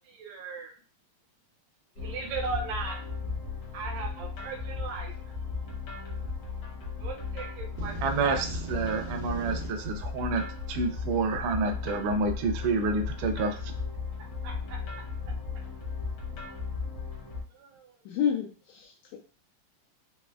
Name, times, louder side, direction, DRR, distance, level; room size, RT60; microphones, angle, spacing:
voice 1, 0.2-0.7 2.0-3.0 3.7-5.1 7.0-7.9 8.2-8.4 14.4-14.8 17.6-17.9, right 4 dB, 75° right, 1 dB, 1.8 m, -37 dB
sound 1, 2.0-17.4, left 4 dB, 65° left, 1.4 m, -36 dB
sound 2, 7.8-9.7, right 4 dB, 10° right, 0.8 m, -39 dB
voice 2, 8.0-13.7, right 3 dB, 90° right, 5 dB, 1.4 m, -29 dB
voice 3, 18.1-19.2, left 8 dB, 80° left, 0 dB, 1.9 m, -30 dB
5.0 x 2.1 x 2.3 m, 0.38 s
omnidirectional pair, 3.5 m